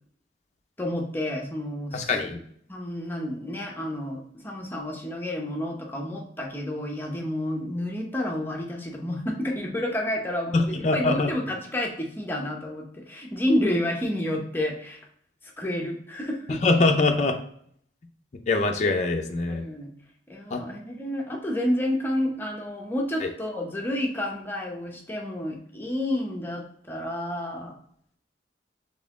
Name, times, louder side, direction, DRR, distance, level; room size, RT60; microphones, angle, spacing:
voice 1, 0.8-2.3 2.7-15.0 15.6-16.6 19.5-19.9 20.3-27.7, left 1 dB, 10° left, 0 dB, 0.8 m, -30 dB
voice 2, 1.9-2.4 10.5-11.3 16.6-17.4 18.5-19.6 20.5-20.6 23.2-23.3, left 3 dB, 40° left, 3 dB, 0.5 m, -23 dB
4.1 x 3.7 x 3.5 m, 0.64 s
head